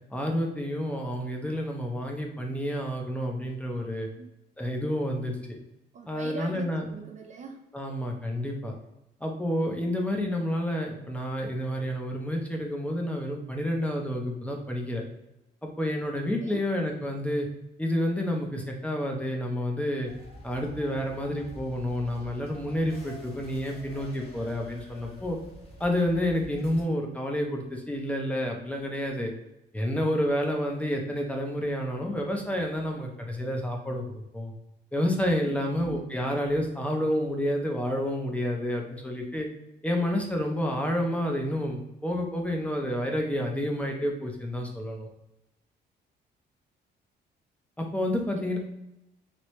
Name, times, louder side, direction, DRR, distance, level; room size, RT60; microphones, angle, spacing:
voice 1, 0.1-4.1 4.6-5.6 6.1-6.9 7.7-8.7 9.2-15.0 15.6-17.5 17.8-20.1 20.4-25.4 25.8-29.3 29.7-34.0 34.3-34.5 34.9-39.5 39.8-45.1 47.8-48.6, equal, 5° left, 1 dB, 0.6 m, -29 dB
voice 2, 5.9-7.6 16.4-16.6 35.5-36.0, right 4 dB, 40° right, 4 dB, 0.4 m, -41 dB
sound 1, 20.0-26.8, equal, 35° left, 1.1 m, -47 dB
3.0 x 2.8 x 3.1 m, 0.92 s
cardioid pair, 115°, 18 cm